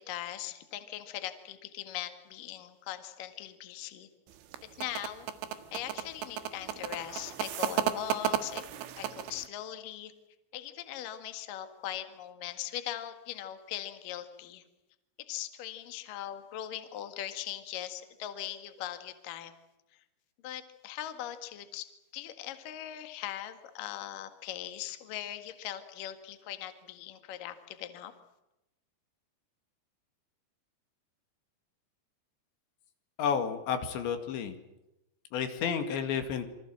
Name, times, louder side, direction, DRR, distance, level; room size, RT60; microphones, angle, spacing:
voice 1, 0.0-4.1 4.6-5.3 5.7-8.7 9.0-10.1 10.5-14.6 15.3-19.5 19.9-20.0 20.4-28.1, left 12 dB, 55° left, 8 dB, 3.0 m, -40 dB
sound 1, 4.3-9.5, right 10 dB, 85° right, 3.9 m, -34 dB
voice 2, 33.2-34.5 35.3-36.5, left 7 dB, 80° left, 7 dB, 4.5 m, -31 dB
28.0 x 24.0 x 7.7 m, 0.92 s
omnidirectional pair, 5.1 m